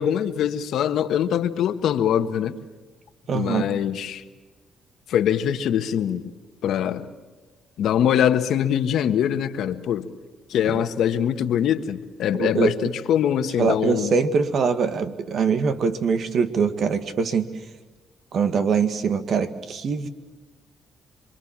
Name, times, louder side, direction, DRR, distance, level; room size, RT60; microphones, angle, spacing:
voice 1, 0.0-2.5 3.3-4.2 5.1-6.3 6.6-7.1 7.8-10.1 10.5-14.1, left 9 dB, 75° left, 8 dB, 1.5 m, -23 dB
voice 2, 3.3-3.7 10.7-10.8 12.3-12.8 13.6-17.5 18.3-20.1, right 5 dB, 60° right, 9 dB, 2.0 m, -23 dB
27.5 x 24.0 x 7.5 m, 1.3 s
cardioid pair, 90°, 0 cm